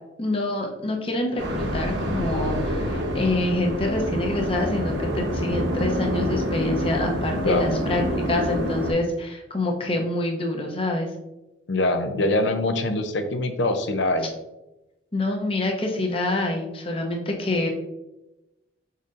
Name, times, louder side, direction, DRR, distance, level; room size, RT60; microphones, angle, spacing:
voice 1, 0.2-11.1 15.1-17.7, left 2 dB, 30° left, 2 dB, 0.7 m, -26 dB
sound 1, 1.4-8.9, equal, 80° right, 1.0 m, -27 dB
voice 2, 11.7-14.3, left 2 dB, 75° left, 7 dB, 0.5 m, -23 dB
4.9 x 4.1 x 2.5 m, 0.98 s
head